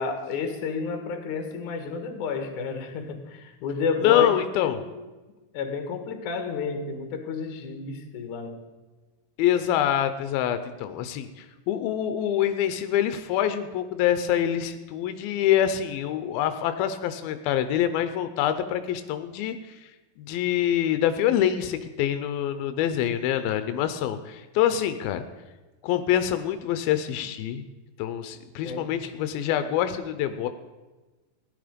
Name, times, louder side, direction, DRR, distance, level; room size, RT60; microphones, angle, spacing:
voice 1, 0.0-4.3 4.6-4.8 5.5-8.6 28.6-29.0, left 5 dB, 60° left, 7 dB, 2.7 m, -31 dB
voice 2, 4.0-4.8 9.4-19.9 20.2-25.3 25.8-27.6 28.0-30.5, left 10 dB, 85° left, 10 dB, 2.6 m, -25 dB
16.5 x 11.5 x 5.1 m, 1.2 s
omnidirectional pair, 4.2 m